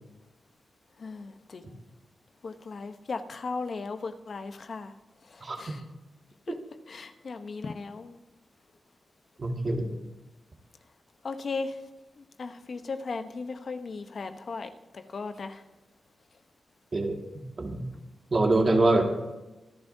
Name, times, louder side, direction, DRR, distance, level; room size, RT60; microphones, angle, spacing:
voice 1, 1.0-1.8 2.4-4.9 5.3-5.8 6.5-6.6 6.9-8.2 9.6-10.0 11.2-11.8 12.2-15.6, left 4 dB, 60° left, 8 dB, 0.8 m, -37 dB
voice 2, 9.4-9.8 16.9-17.9 18.3-19.1, right 2 dB, 50° right, 2 dB, 1.9 m, -25 dB
25.0 x 10.5 x 2.7 m, 1.1 s
cardioid pair, 55°, 0 cm